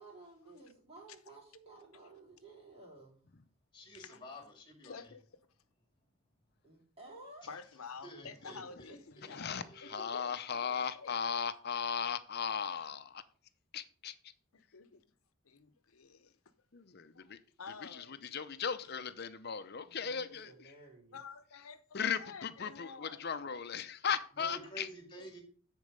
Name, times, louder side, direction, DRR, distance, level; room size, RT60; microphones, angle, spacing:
voice 1, 0.0-3.1 6.6-7.5 8.5-8.6 19.8-21.2, right 2 dB, 30° right, 3.5 m, -54 dB
voice 2, 3.7-5.1 7.4-7.5 8.0-10.8 24.3-25.4, equal, 20° left, 2.1 m, -51 dB
voice 3, 4.8-5.2 7.5-10.6 10.9-11.2 14.5-15.0 15.4-16.4 17.1-18.4 21.1-23.3 25.2-25.3, left 5 dB, 85° left, 0.8 m, -50 dB
voice 4, 9.3-13.2 13.7-14.1 16.7-17.4 17.8-18.0 18.3-20.7 21.9-24.9, left 6 dB, 50° left, 0.7 m, -37 dB
9.7 x 4.6 x 5.3 m
head